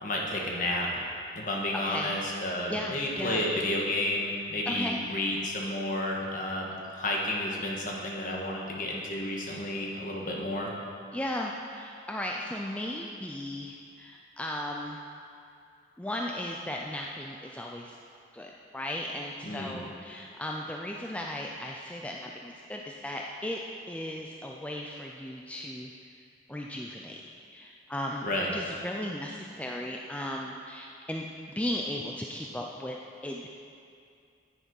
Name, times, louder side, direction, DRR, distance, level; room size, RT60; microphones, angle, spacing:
voice 1, 0.0-1.0 1.3-10.7 19.4-19.8 28.2-28.5, left 1 dB, 45° left, -2 dB, 1.5 m, -31 dB
voice 2, 1.7-2.2 2.7-3.4 4.7-5.0 11.1-15.0 16.0-18.0 18.3-23.6 23.9-26.2 26.5-27.2 27.5-28.3 28.5-31.3 31.6-33.5, left 1 dB, 5° left, -1 dB, 0.4 m, -36 dB
9.9 x 8.7 x 5.4 m, 2.4 s
head